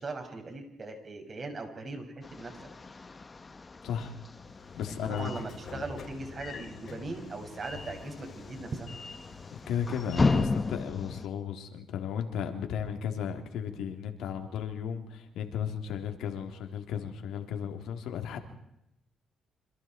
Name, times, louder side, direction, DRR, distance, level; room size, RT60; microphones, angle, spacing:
voice 1, 0.0-2.7 4.9-8.9, right 3 dB, 40° right, 4 dB, 6.5 m, -39 dB
sound 1, 2.2-11.3, left 3 dB, 25° left, 1.4 m, -35 dB
voice 2, 3.8-4.2 4.8-5.3 9.5-18.4, left 8 dB, 85° left, 5 dB, 3.4 m, -35 dB
Train / Sliding door, 4.3-10.8, left 5 dB, 55° left, 6.4 m, -46 dB
28.0 x 27.0 x 4.6 m, 0.84 s
cardioid pair, 90°, 0 cm